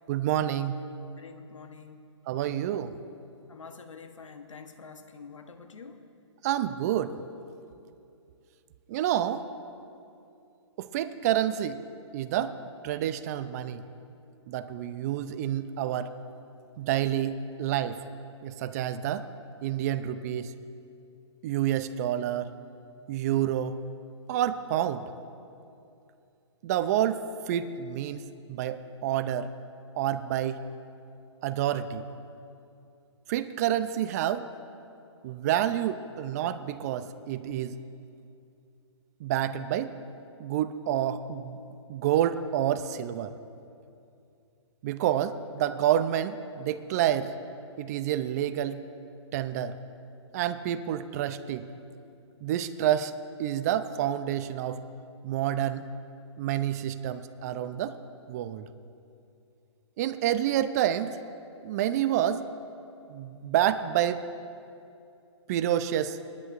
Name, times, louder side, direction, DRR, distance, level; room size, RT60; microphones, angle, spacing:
voice 1, 0.1-0.8 2.3-3.0 6.4-7.2 8.9-9.5 10.8-11.8 12.1-12.6 12.8-13.8 14.5-16.1 16.8-18.0 18.4-19.3 19.6-20.5 21.4-22.5 23.1-23.8 24.3-25.1 26.6-27.2 27.5-29.5 30.0-30.6 31.4-32.0 33.3-34.5 35.2-37.8 39.2-39.9 40.4-41.6 41.9-43.3 44.8-47.3 47.8-48.8 49.3-49.8 50.3-51.7 52.4-53.1 53.4-54.8 55.2-55.9 56.4-58.0 58.3-58.7 60.0-61.2 61.6-62.4 63.1-64.2 65.5-66.2, right 11 dB, 35° right, 12 dB, 0.5 m, -28 dB
voice 2, 1.2-2.1 3.5-6.0, left 5 dB, 85° left, 7 dB, 1.0 m, -47 dB
27.0 x 10.5 x 2.5 m, 2.6 s
hypercardioid pair, 135°, 16 cm